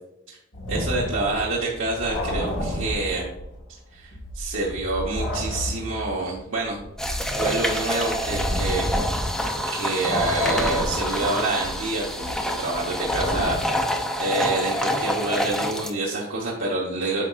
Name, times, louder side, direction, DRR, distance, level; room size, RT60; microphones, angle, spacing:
sound 1, 0.5-3.6 3.9-9.7 10.0-14.1, left 1 dB, 65° left, 1.5 m, -31 dB
voice 1, 0.7-3.3 3.9-6.8 7.4-8.9 9.7-13.8 14.2-17.3, right 2 dB, 70° right, -4 dB, 1.1 m, -27 dB
Washing Face in Bathroom Sink Stereo, 7.0-15.9, equal, 5° left, 0.5 m, -27 dB
8.5 x 5.6 x 2.4 m, 0.86 s
head